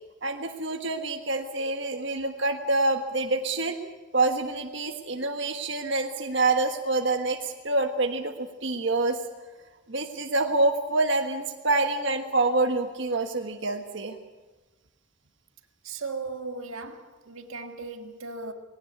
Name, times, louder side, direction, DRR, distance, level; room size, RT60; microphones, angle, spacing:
voice 1, 0.2-3.8 4.1-9.2 9.9-14.2, right 2 dB, 60° right, 1.5 m, -26 dB
voice 2, 15.8-18.5, right 3 dB, 85° right, 1.7 m, -37 dB
19.5 x 17.5 x 8.2 m
head